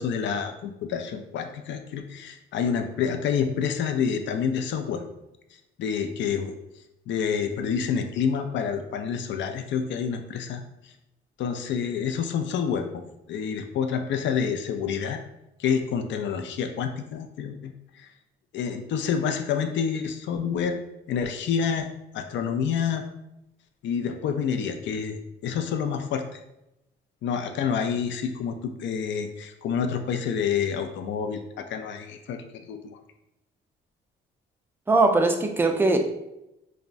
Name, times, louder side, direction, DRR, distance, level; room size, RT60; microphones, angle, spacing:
voice 1, 0.0-5.0 5.8-6.5 7.1-10.9 11.4-13.0 13.3-15.2 15.6-18.1 18.5-20.8 21.1-21.9 22.1-23.0 23.8-25.2 25.4-26.4 27.2-33.0, left 7 dB, 65° left, 7 dB, 0.4 m, -28 dB
voice 2, 34.9-36.0, right 3 dB, 10° right, 4 dB, 0.3 m, -20 dB
3.4 x 2.1 x 2.5 m, 0.88 s
cardioid pair, 90°, 20 cm